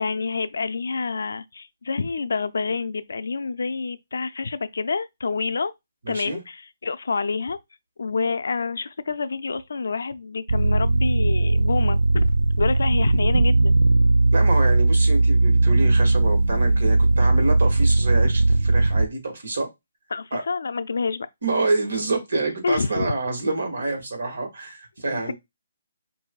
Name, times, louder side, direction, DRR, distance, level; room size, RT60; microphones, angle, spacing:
voice 1, 0.0-5.7 6.1-7.6 8.0-12.3 12.6-13.8 20.1-21.3 22.6-23.1 25.0-25.1, left 4 dB, 75° left, 0.5 m, -27 dB
voice 2, 6.0-6.4 14.3-19.7 20.3-20.4 21.4-25.3, right 3 dB, 70° right, 1.8 m, -27 dB
sound 1, 10.5-19.1, right 2 dB, 85° right, 0.3 m, -18 dB
6.1 x 2.6 x 2.4 m
hypercardioid pair, 160°, 0 cm